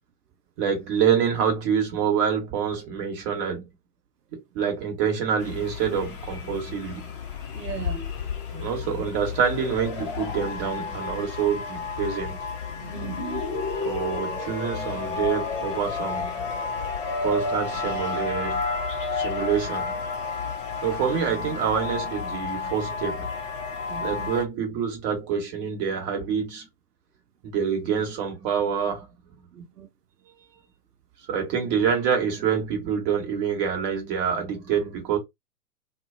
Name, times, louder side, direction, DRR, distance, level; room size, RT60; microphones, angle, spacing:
voice 1, 0.6-3.7 4.3-7.1 8.5-12.4 13.8-16.4 17.2-18.6 19.1-19.9 20.8-23.3 24.0-26.7 27.4-29.1 31.3-35.2, right 7 dB, 30° right, 1.1 m, -26 dB
sound 1, 5.4-24.4, left 4 dB, 35° left, 0.7 m, -31 dB
voice 2, 7.5-8.1 12.9-13.6 23.9-24.3 29.5-29.9, right 9 dB, 85° right, 0.6 m, -38 dB
2.4 x 2.2 x 2.5 m
figure-of-eight pair, 110°, 46 cm